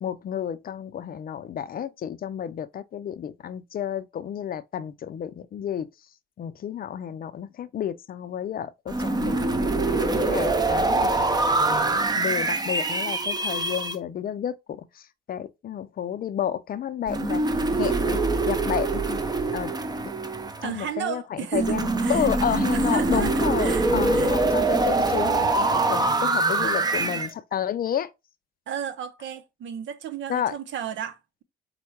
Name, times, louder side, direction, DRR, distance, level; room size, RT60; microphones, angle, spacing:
voice 1, 0.0-5.9 6.4-11.1 12.2-17.4 17.8-18.2 18.5-19.2 19.5-19.7 20.0-20.1 20.6-28.1 30.3-30.5, left 9 dB, 50° left, 0.5 m, -31 dB
sound 1, 8.9-14.0 17.1-20.8 21.5-27.3, right 2 dB, 20° right, 0.6 m, -24 dB
voice 2, 20.6-22.3 22.7-23.3 23.6-23.9 24.1-24.3 28.7-31.4, right 9 dB, 70° right, 0.7 m, -33 dB
4.4 x 2.2 x 4.4 m
cardioid pair, 90°, 20 cm